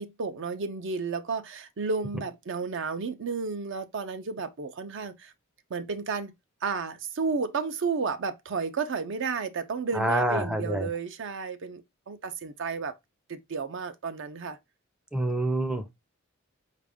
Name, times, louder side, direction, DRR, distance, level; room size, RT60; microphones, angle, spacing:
voice 1, 0.0-5.3 5.7-6.3 6.6-12.9 13.3-14.6, right 4 dB, 60° right, 0.5 m, -32 dB
voice 2, 9.9-10.9 15.1-15.9, right 1 dB, 5° right, 0.4 m, -27 dB
4.9 x 2.4 x 3.5 m
head